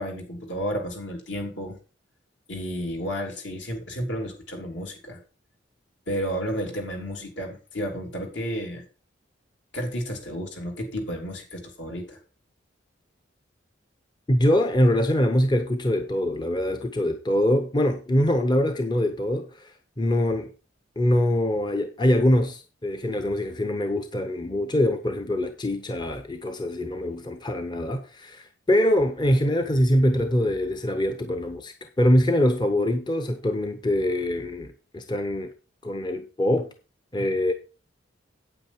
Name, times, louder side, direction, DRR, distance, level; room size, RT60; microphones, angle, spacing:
voice 1, 0.0-1.8 2.5-5.2 6.1-8.8 9.7-12.2, equal, 70° left, 3.3 m, -32 dB
voice 2, 14.3-20.5 21.0-35.5 35.8-36.7 37.1-37.5, left 1 dB, 25° left, 0.8 m, -23 dB
8.8 x 8.6 x 4.5 m
head